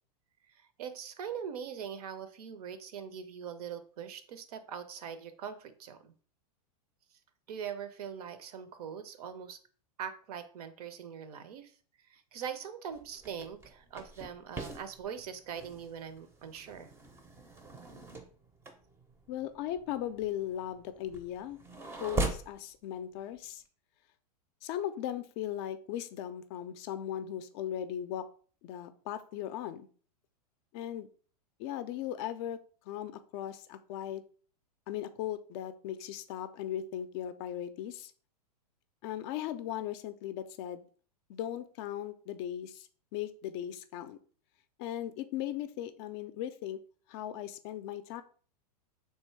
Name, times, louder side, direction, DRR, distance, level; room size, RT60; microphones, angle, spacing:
voice 1, 0.5-6.1 7.5-9.6 10.0-11.7 12.1-16.9, right 7 dB, 65° right, 12 dB, 0.6 m, -42 dB
sound 1, 12.9-22.6, right 2 dB, 10° right, 0.5 m, -41 dB
voice 2, 19.3-21.6 22.0-23.6 24.6-28.3 28.6-29.9 30.7-31.1 31.6-32.6 32.9-34.2 34.9-38.1 39.0-40.8 41.3-44.2 44.8-46.8 47.1-48.2, left 11 dB, 40° left, 11 dB, 0.4 m, -38 dB
3.3 x 2.7 x 4.4 m, 0.44 s
hypercardioid pair, 130°, 21 cm